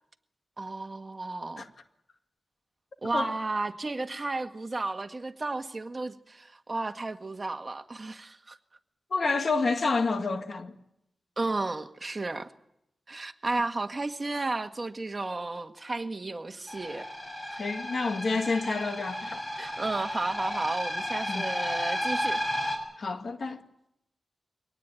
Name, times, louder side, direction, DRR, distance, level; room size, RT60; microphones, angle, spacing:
voice 1, 0.6-1.7 3.0-8.6 11.4-12.5 13.1-17.1 17.5-17.6 18.6-18.7 19.6-22.4, right 2 dB, 35° right, 1.6 m, -33 dB
voice 2, 9.1-10.7 17.6-19.4 21.3-21.4 23.0-23.6, left 4 dB, 65° left, 2.0 m, -29 dB
sound 1, 16.7-22.8, equal, 20° left, 7.1 m, -33 dB
23.5 x 18.5 x 9.1 m
cardioid pair, 60°, 0 cm